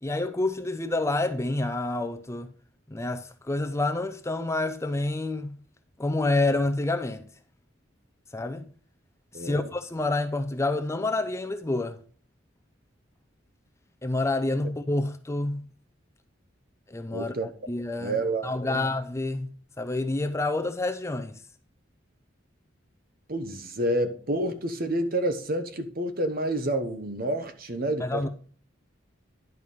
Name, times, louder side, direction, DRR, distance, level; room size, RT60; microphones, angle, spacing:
voice 1, 0.0-2.5 2.9-5.6 6.0-7.2 8.3-8.6 9.3-12.0 14.0-15.6 16.9-21.4 28.0-28.3, left 2 dB, 15° left, 0.5 m, -28 dB
voice 2, 9.3-9.7 17.1-17.5 18.0-18.9 23.3-28.3, right 1 dB, 50° right, 1.1 m, -29 dB
10.5 x 4.7 x 5.5 m
head